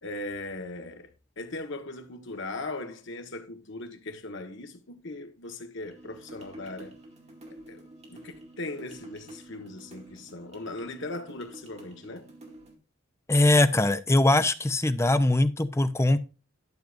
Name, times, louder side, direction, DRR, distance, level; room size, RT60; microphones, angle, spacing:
voice 1, 0.0-1.1 1.4-7.0 7.5-7.8 8.1-12.3, left 2 dB, 65° left, 1.5 m, -39 dB
sound 1, 5.8-12.8, right 1 dB, 35° right, 2.2 m, -49 dB
voice 2, 13.3-16.2, left 2 dB, 15° left, 0.5 m, -22 dB
12.0 x 6.7 x 2.6 m
head